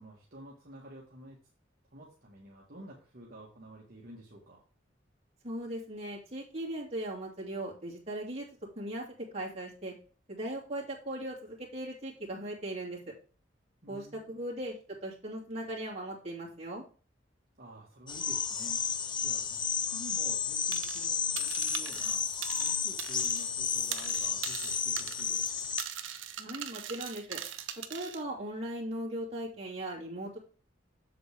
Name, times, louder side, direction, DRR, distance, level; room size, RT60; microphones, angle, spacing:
voice 1, 0.0-1.4 1.9-4.6 13.8-14.3 17.6-18.8 19.2-25.5, right 1 dB, 50° right, -3 dB, 1.6 m, -50 dB
voice 2, 5.4-8.5 8.7-9.9 10.3-13.0 13.9-14.7 15.0-16.8 26.4-27.4 27.9-30.4, right 1 dB, 35° right, -3 dB, 2.8 m, -38 dB
sound 1, 18.1-25.8, left 7 dB, 25° left, 0.6 m, -32 dB
sound 2, 20.7-21.1 21.4-23.5 23.7-28.2, right 10 dB, 85° right, 0.8 m, -40 dB
7.5 x 7.0 x 3.5 m, 0.38 s
head